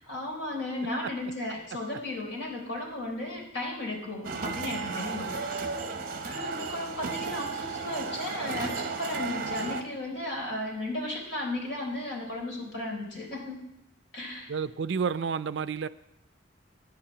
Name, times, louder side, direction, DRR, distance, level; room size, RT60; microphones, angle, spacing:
voice 1, 0.1-5.5 6.2-13.6 14.1-14.5, left 2 dB, 70° left, -1 dB, 3.8 m, -35 dB
sound 1, 4.2-9.8, right 4 dB, 50° right, 1.0 m, -34 dB
voice 2, 14.5-15.9, right 6 dB, 65° right, 16 dB, 0.4 m, -30 dB
10.0 x 5.8 x 8.5 m, 0.85 s
head